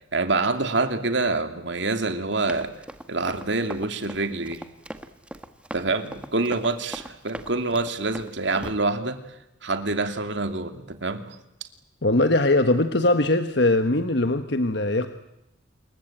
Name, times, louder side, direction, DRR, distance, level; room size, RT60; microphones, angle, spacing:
voice 1, 0.1-2.7 3.1-4.6 5.7-9.2 9.6-11.4, right 3 dB, 65° right, 8 dB, 2.8 m, -26 dB
Run, 2.5-8.7, right 1 dB, 5° right, 1.5 m, -39 dB
voice 2, 12.0-15.1, left 2 dB, 60° left, 8 dB, 1.4 m, -21 dB
28.0 x 23.0 x 8.9 m, 0.87 s
head